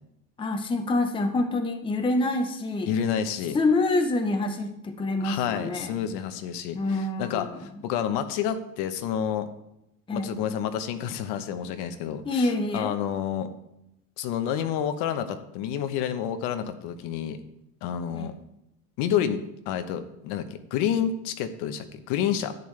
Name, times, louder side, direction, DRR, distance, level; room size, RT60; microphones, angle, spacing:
voice 1, 0.4-2.9 3.5-5.9 6.7-7.7 10.1-10.4 12.2-12.9 18.1-18.4, left 2 dB, 10° left, 5 dB, 0.7 m, -26 dB
voice 2, 2.9-3.6 5.2-9.5 10.1-13.5 14.2-17.4 17.8-18.3 19.0-20.5 20.7-22.5, left 9 dB, 60° left, 9 dB, 1.0 m, -29 dB
11.0 x 9.2 x 3.3 m, 0.84 s
supercardioid pair, 135°, 45 cm